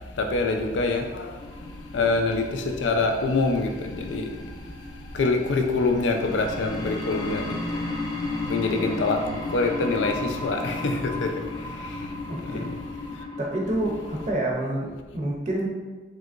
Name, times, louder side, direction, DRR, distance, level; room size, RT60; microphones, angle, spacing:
voice 1, 0.2-1.4 1.9-4.4 5.1-7.8 8.4-12.1 12.4-12.8, left 3 dB, 85° left, 0.4 m, -25 dB
sound 1, 1.4-14.3, left 2 dB, 20° left, 0.4 m, -35 dB
voice 2, 12.3-12.6 13.4-14.9 15.1-15.7, right 1 dB, 40° right, 0.6 m, -27 dB
3.5 x 2.8 x 2.4 m
head